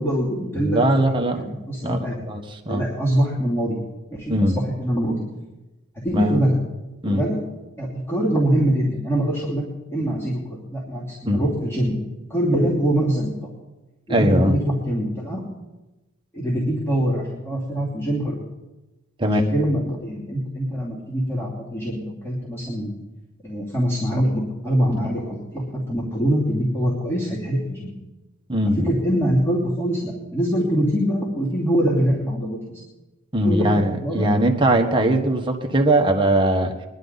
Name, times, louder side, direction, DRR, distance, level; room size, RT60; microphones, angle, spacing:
voice 1, 0.0-1.0 1.4-2.2 2.7-3.8 4.1-5.2 6.0-6.6 7.0-7.4 7.8-9.6 9.9-12.0 12.3-13.3 14.1-15.4 16.3-18.4 19.2-22.9 23.4-27.9 28.8-32.8 33.4-33.7 34.0-34.3, equal, 10° left, -7 dB, 2.8 m, -23 dB
voice 2, 0.6-1.4 1.8-2.8 4.3-4.6 6.1-6.4 7.0-7.2 11.2-11.4 14.1-14.5 19.2-19.4 28.5-28.9 33.3-36.7, right 1 dB, 25° right, 3 dB, 1.3 m, -20 dB
21.5 x 11.5 x 4.1 m, 1.1 s
head